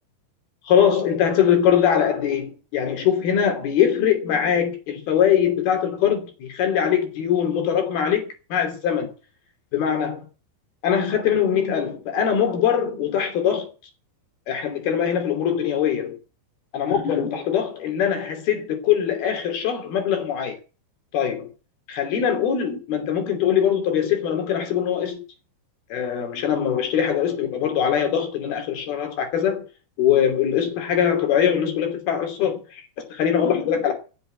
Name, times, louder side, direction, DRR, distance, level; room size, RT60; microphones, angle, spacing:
voice 1, 0.6-8.2 8.5-9.1 9.7-10.3 10.8-13.7 14.5-16.2 16.7-20.6 21.1-21.5 21.9-25.2 25.9-29.6 30.0-32.8 33.1-33.9, left 8 dB, 60° left, 4.5 m, -22 dB
15.0 x 7.9 x 7.8 m
omnidirectional pair, 5.0 m